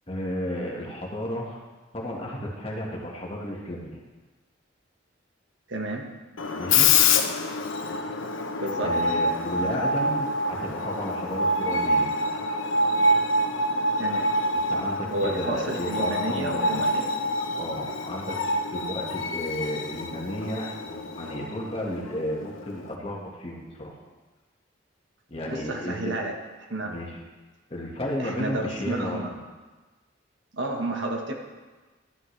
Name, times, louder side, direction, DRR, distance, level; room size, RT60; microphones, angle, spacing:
voice 1, 0.1-1.6 1.9-4.0 6.5-6.9 8.8-12.1 14.5-16.9 17.6-18.4 18.7-23.9 25.3-26.2 26.8-27.2 27.7-29.2, left 1 dB, 30° left, -2 dB, 1.6 m, -33 dB
voice 2, 5.7-6.1 8.5-8.9 14.0-14.3 15.1-17.1 25.5-26.3 26.7-26.9 28.2-29.3 30.5-31.3, right 2 dB, 65° right, 1 dB, 1.4 m, -31 dB
Screech, 6.4-22.9, left 2 dB, 80° left, 0.8 m, -26 dB
12.5 x 11.0 x 3.3 m, 1.3 s
head